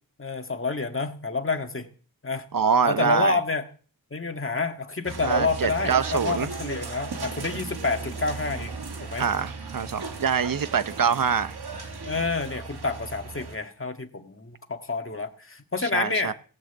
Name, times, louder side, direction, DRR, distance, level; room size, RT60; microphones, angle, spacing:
voice 1, 0.2-1.9 2.2-2.4 2.8-3.7 4.1-8.8 9.0-9.3 12.0-16.3, left 3 dB, 35° left, 5 dB, 1.8 m, -28 dB
voice 2, 2.5-3.4 5.2-6.5 9.2-11.6 15.9-16.3, right 6 dB, 60° right, 14 dB, 0.8 m, -25 dB
sound 1, 5.0-13.6, right 4 dB, 85° right, 2.2 m, -36 dB
17.5 x 6.4 x 8.0 m, 0.42 s
wide cardioid pair, 70°, 38 cm